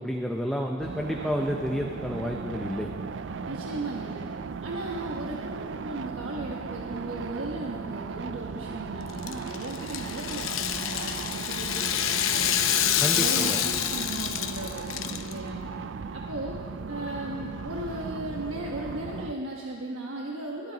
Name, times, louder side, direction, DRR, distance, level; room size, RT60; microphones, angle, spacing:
voice 1, 0.0-2.9 13.0-13.6, equal, ahead, 1 dB, 0.6 m, -30 dB
sound 1, 0.8-19.3, right 5 dB, 60° right, 0.4 m, -37 dB
voice 2, 3.5-4.3 4.6-12.7 13.1-15.6 16.1-16.6 16.9-20.7, right 1 dB, 80° right, -1 dB, 1.2 m, -36 dB
Rattle (instrument), 9.1-15.3, left 10 dB, 75° left, 0.8 m, -27 dB
20.5 x 12.0 x 4.0 m, 2.2 s
head